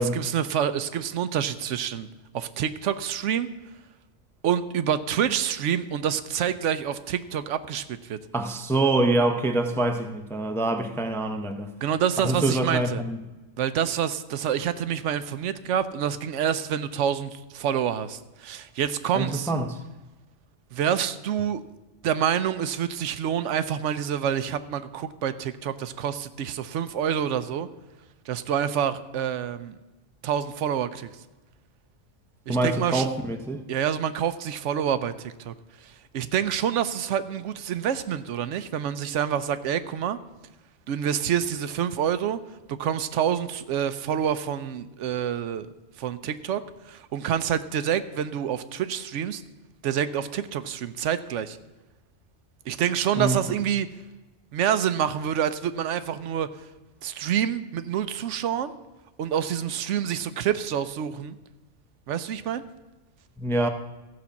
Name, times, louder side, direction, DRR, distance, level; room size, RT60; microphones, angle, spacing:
voice 1, 0.0-2.1 2.3-3.5 4.4-8.2 11.8-13.0 13.6-19.5 20.7-21.6 22.0-27.7 28.3-29.7 30.2-31.1 32.5-33.1 33.7-35.5 35.8-40.2 40.9-42.4 42.7-45.7 46.0-46.6 46.9-49.4 49.8-51.6 52.7-53.9 54.5-56.5 57.0-58.7 59.2-61.4 62.1-62.6, right 9 dB, 85° right, 1.0 m, -27 dB
voice 2, 8.3-11.7 12.2-13.2 19.1-19.8 32.5-33.6 53.2-53.4 63.4-63.7, right 2 dB, 5° left, 0.4 m, -25 dB
14.5 x 5.2 x 7.1 m
omnidirectional pair, 1.2 m